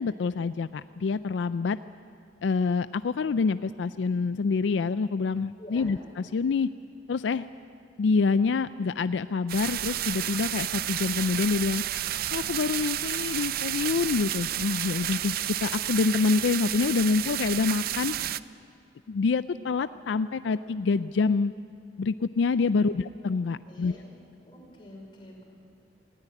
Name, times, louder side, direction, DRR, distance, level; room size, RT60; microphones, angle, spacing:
voice 1, 0.0-1.8 2.4-6.7 7.1-7.5 8.0-11.8 12.3-18.2 19.1-21.5 22.0-23.9, left 4 dB, 80° left, 14 dB, 0.4 m, -26 dB
sound 1, 9.5-18.4, right 12 dB, 55° right, 0.5 m, -31 dB
voice 2, 23.7-24.1 24.5-25.4, left 1 dB, 25° left, -2 dB, 5.4 m, -47 dB
19.0 x 16.5 x 9.7 m, 2.5 s
head